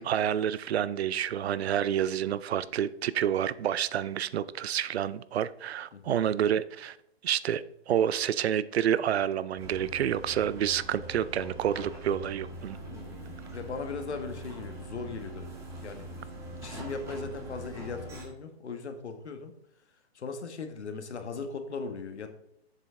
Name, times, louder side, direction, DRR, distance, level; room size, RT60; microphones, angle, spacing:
voice 1, 0.0-7.0 7.2-12.8 16.7-16.8, right 10 dB, 70° right, 0.5 m, -29 dB
voice 2, 5.9-6.2 12.9-15.5 15.8-16.3 16.6-19.5 20.1-22.3, left 4 dB, 85° left, 1.3 m, -38 dB
sound 1, 9.6-18.2, right 1 dB, 10° right, 1.8 m, -42 dB
7.4 x 5.6 x 3.7 m
hypercardioid pair, 150°, 33 cm